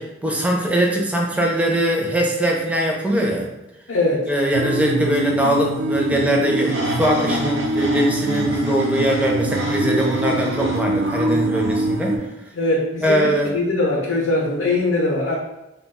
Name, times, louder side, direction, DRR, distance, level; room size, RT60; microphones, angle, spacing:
voice 1, 0.0-3.5 4.3-12.2 13.0-13.5, equal, 5° right, -1 dB, 0.4 m, -21 dB
voice 2, 3.9-4.3 12.5-15.4, left 2 dB, 75° left, -3 dB, 0.5 m, -21 dB
sound 1, 4.5-12.2, right 2 dB, 85° right, 0.3 m, -24 dB
sound 2, 6.5-12.2, right 1 dB, 65° right, 0.7 m, -33 dB
2.2 x 2.1 x 3.4 m, 0.93 s
head